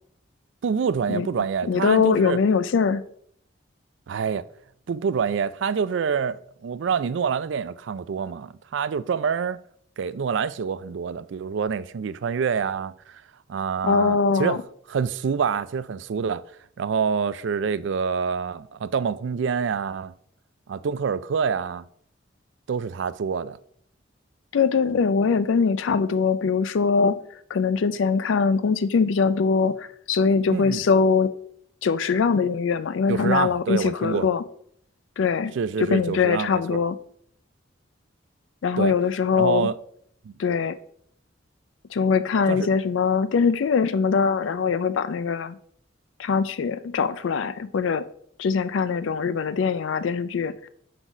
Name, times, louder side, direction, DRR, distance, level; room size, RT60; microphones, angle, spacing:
voice 1, 0.6-2.4 4.1-4.4 4.9-9.6 10.0-13.2 13.5-14.6 14.9-16.4 16.8-20.1 20.7-21.8 22.7-23.6 30.5-30.8 33.1-34.3 35.5-36.8 38.8-38.9 39.3-39.8 40.2-40.3 42.5-42.7, right 6 dB, 70° right, 0.4 m, -26 dB
voice 2, 1.7-3.0 13.8-14.6 24.5-27.2 27.5-31.3 31.8-34.4 35.2-35.5 35.8-37.0 38.6-39.7 40.4-40.8 41.9-45.6 46.2-48.0 48.4-50.7, left 5 dB, 80° left, 0.4 m, -22 dB
5.9 x 3.9 x 6.0 m
head